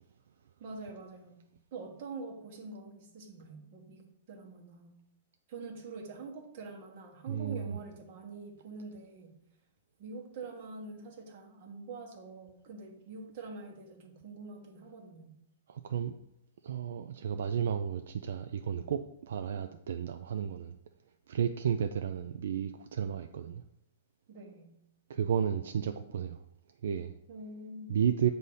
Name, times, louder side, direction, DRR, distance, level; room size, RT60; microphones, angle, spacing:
voice 1, 0.6-1.4 1.7-5.0 5.5-9.3 10.0-15.4 24.3-24.7 27.3-28.0, right 3 dB, 50° right, 2 dB, 1.2 m, -45 dB
voice 2, 7.3-7.7 15.7-16.1 16.6-20.8 21.3-23.6 25.1-26.4 26.8-27.1 27.9-28.3, right 8 dB, 80° right, 7 dB, 0.3 m, -32 dB
6.4 x 2.7 x 5.5 m, 0.80 s
hypercardioid pair, 150°, 0 cm